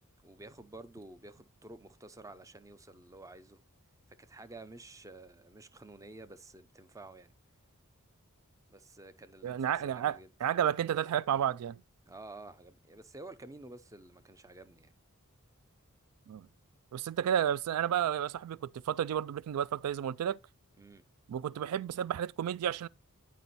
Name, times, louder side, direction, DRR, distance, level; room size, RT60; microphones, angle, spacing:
voice 1, 0.2-3.6 4.2-7.3 8.7-10.3 12.1-14.9 20.8-21.0, right 2 dB, 15° right, 0.5 m, -51 dB
voice 2, 9.4-11.8 16.3-16.5 16.9-20.4 21.3-22.9, right 9 dB, 85° right, 0.3 m, -31 dB
9.3 x 5.1 x 4.1 m
head